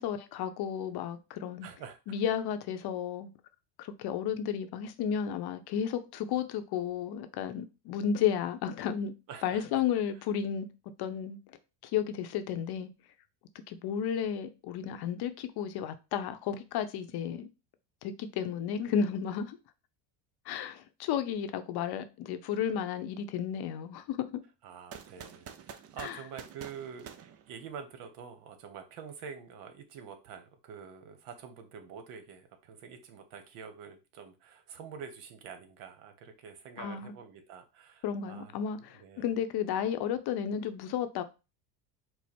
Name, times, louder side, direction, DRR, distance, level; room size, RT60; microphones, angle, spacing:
voice 1, 0.0-1.7 2.1-3.3 3.8-9.1 9.4-10.7 11.0-11.4 11.8-12.9 13.7-17.5 18.0-19.6 20.5-24.3 26.0-26.2 36.8-37.1 38.0-41.2, left 8 dB, 50° left, 0.7 m, -33 dB
voice 2, 1.6-2.0 9.3-9.8 24.6-39.3, right 7 dB, 75° right, 1.1 m, -47 dB
sound 1, 24.9-28.1, right 8 dB, 30° right, 0.4 m, -48 dB
4.5 x 2.0 x 4.3 m
supercardioid pair, 95°, 50 cm